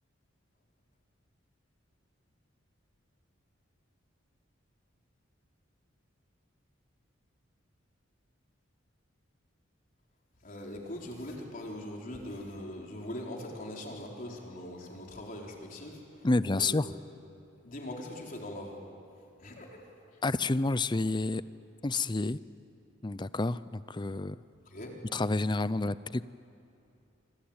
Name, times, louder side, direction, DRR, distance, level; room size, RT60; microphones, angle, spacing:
voice 1, 10.4-16.8 17.6-18.8 19.4-19.8 20.1-20.2 24.7-25.0, left 1 dB, 45° left, 0 dB, 4.1 m, -41 dB
voice 2, 16.2-16.9 20.2-21.4 21.8-22.4 23.0-24.4 25.1-26.2, left 2 dB, 25° left, 16 dB, 0.6 m, -29 dB
26.5 x 25.0 x 8.8 m, 2.7 s
head